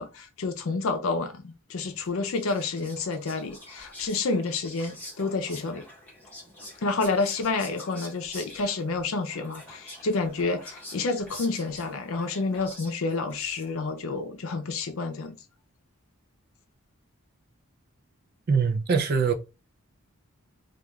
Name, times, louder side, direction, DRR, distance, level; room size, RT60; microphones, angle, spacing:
voice 1, 0.0-5.9 6.8-15.4, left 3 dB, 70° left, 0.5 m, -29 dB
Whispering, 2.0-14.0, left 1 dB, 10° left, 1.3 m, -46 dB
voice 2, 18.5-19.3, right 5 dB, 45° right, 0.4 m, -23 dB
3.0 x 2.4 x 2.3 m
head